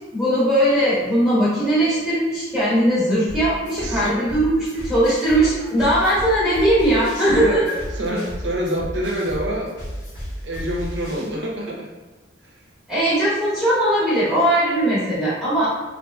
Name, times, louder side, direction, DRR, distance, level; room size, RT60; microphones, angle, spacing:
voice 1, 0.1-7.6 12.9-15.7, right 1 dB, ahead, -12 dB, 1.0 m, -19 dB
sound 1, 3.3-11.3, equal, 50° left, 1.2 m, -33 dB
voice 2, 3.8-4.4 5.6-5.7 7.1-9.8 10.4-11.9 12.4-12.6, equal, 75° right, -2 dB, 0.7 m, -27 dB
2.8 x 2.5 x 2.2 m, 1.3 s
head